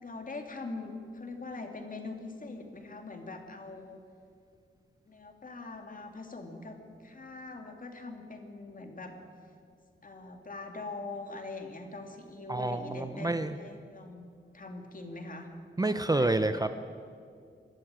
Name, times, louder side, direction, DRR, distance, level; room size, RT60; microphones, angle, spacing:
voice 1, 0.0-4.0 5.0-9.1 10.0-14.3 14.5-15.5 15.8-16.5, left 3 dB, 40° left, 4 dB, 2.6 m, -42 dB
voice 2, 12.5-13.6 15.8-16.7, right 2 dB, 20° right, 9 dB, 0.6 m, -28 dB
24.5 x 13.0 x 8.9 m, 2.3 s
wide cardioid pair, 145°, 20 cm